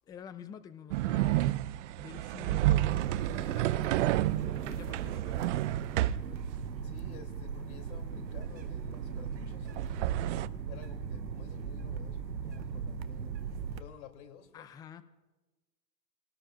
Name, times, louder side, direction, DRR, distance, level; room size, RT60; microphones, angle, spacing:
voice 1, 0.1-1.6 2.0-5.5 14.5-15.0, left 7 dB, 10° left, 0.4 m, -48 dB
sound 1, 0.9-6.3 9.6-10.5, right 15 dB, 50° right, 0.5 m, -30 dB
sound 2, 2.8-13.8, right 6 dB, 90° right, 1.0 m, -38 dB
voice 2, 6.7-10.4 10.7-13.4 13.7-14.7, left 7 dB, 55° left, 3.2 m, -52 dB
28.0 x 19.0 x 2.5 m
hypercardioid pair, 105°, 50 cm